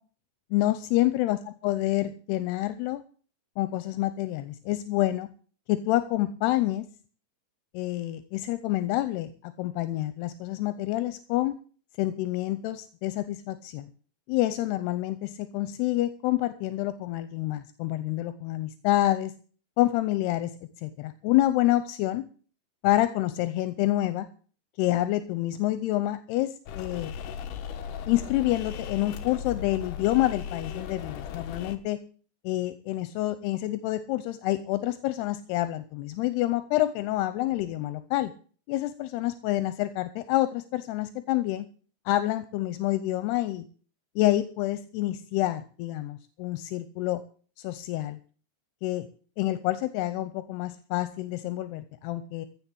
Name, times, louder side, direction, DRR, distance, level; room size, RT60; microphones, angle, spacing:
voice 1, 0.5-1.4 1.6-3.0 3.6-5.3 5.7-6.9 7.7-11.6 12.0-13.9 14.3-19.3 19.8-20.5 20.8-22.2 22.8-24.3 24.8-27.1 28.1-32.0 32.4-38.3 38.7-41.7 42.1-43.7 44.2-47.2 47.6-48.2 48.8-49.1 49.4-52.5, left 15 dB, 85° left, 12 dB, 2.8 m, -27 dB
sound 1, 26.7-31.8, left 7 dB, 65° left, 2.3 m, -37 dB
15.5 x 6.5 x 8.5 m, 0.42 s
omnidirectional pair, 4.6 m